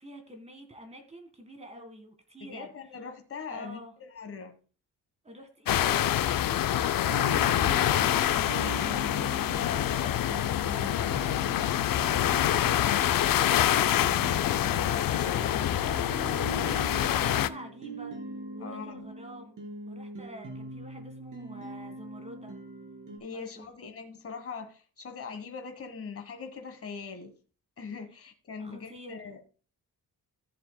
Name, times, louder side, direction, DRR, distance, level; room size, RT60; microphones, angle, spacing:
voice 1, 0.0-2.7 3.5-3.9 5.2-8.6 11.9-13.5 17.2-18.2 18.5-19.6 19.9-22.5 23.3-23.7 28.6-29.2, right 1 dB, 20° right, 5 dB, 1.7 m, -47 dB
voice 2, 2.4-4.6 7.7-8.9 9.2-10.3 14.8-16.0 18.6-19.0 23.2-27.4 27.8-29.4, left 5 dB, 40° left, 6 dB, 1.4 m, -41 dB
sound 1, 5.7-17.5, left 11 dB, 65° left, 0.5 m, -26 dB
sound 2, 7.1-23.2, right 2 dB, 55° right, 2.7 m, -42 dB
14.5 x 7.3 x 2.2 m, 0.36 s
wide cardioid pair, 150°, 36 cm